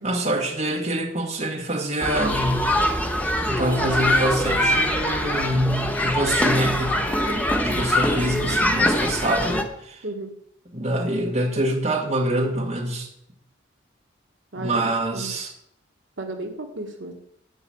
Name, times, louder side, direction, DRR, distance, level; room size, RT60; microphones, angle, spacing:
voice 1, 0.0-2.8 3.4-7.1 7.6-10.0 10.7-13.1 14.6-15.5, right 1 dB, 35° right, 0 dB, 1.6 m, -25 dB
sound 1, 2.0-9.6, left 1 dB, 5° left, 0.8 m, -23 dB
voice 2, 7.1-7.4 10.0-10.3 14.5-15.3 16.2-17.1, right 2 dB, 65° right, 3 dB, 1.5 m, -34 dB
11.0 x 5.8 x 7.8 m, 0.76 s
head